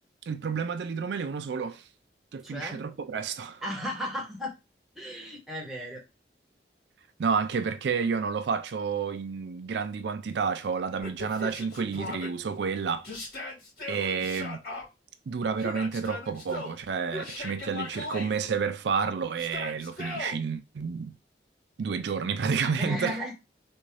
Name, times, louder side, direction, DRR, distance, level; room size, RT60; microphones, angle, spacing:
voice 1, 0.3-1.8 2.3-3.6 7.2-13.1 13.9-14.6 15.3-21.2 21.8-23.2, right 5 dB, 75° right, 0.4 m, -30 dB
voice 2, 2.4-2.8 3.6-4.5 4.9-6.0 22.8-23.3, equal, ahead, 1.0 m, -34 dB
Yell, 11.0-12.3 13.0-14.8 15.6-16.8 17.1-18.3 19.4-20.4, left 2 dB, 55° left, 2.1 m, -38 dB
3.5 x 2.6 x 3.2 m
head